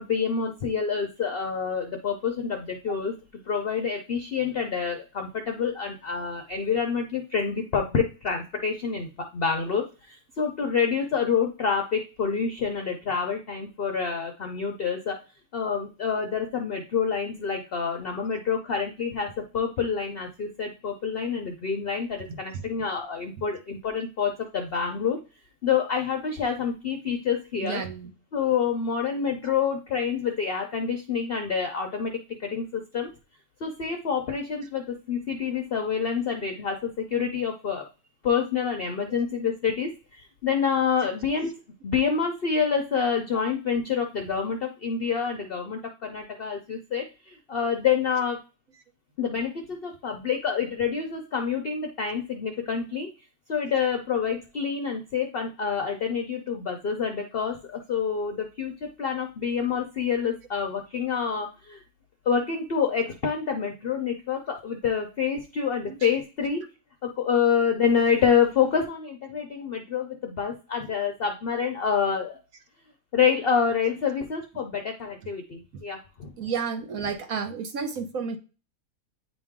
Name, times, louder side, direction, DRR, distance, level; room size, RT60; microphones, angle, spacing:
voice 1, 0.0-3.1 3.5-15.2 15.5-25.2 25.6-27.8 28.3-33.1 33.6-37.9 38.2-41.5 41.8-48.4 49.2-53.1 53.5-58.7 59.0-61.8 62.3-66.6 67.0-72.4 73.1-76.3, left 6 dB, 50° left, 3 dB, 0.7 m, -27 dB
voice 2, 27.6-28.1 65.9-66.0 75.7-75.8 76.4-78.4, right 6 dB, 70° right, 7 dB, 1.2 m, -31 dB
8.7 x 3.1 x 3.6 m, 0.33 s
omnidirectional pair, 1.6 m